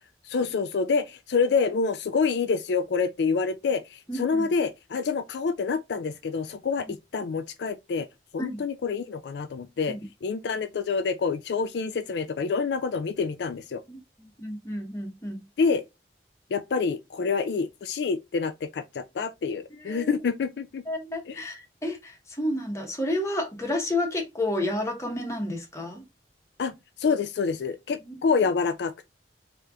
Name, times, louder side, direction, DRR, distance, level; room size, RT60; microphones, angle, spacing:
voice 1, 0.2-6.9 7.1-8.1 8.3-13.8 15.6-15.8 16.5-20.8 21.3-21.4 26.6-26.7 27.0-28.9, left 5 dB, 70° left, 0.4 m, -27 dB
voice 2, 4.1-4.5 6.8-6.9 8.4-8.6 9.9-10.0 13.9-15.4 19.7-20.2 20.9-26.0 28.0-28.5, left 1 dB, 15° left, 1.1 m, -31 dB
3.3 x 2.8 x 3.5 m
head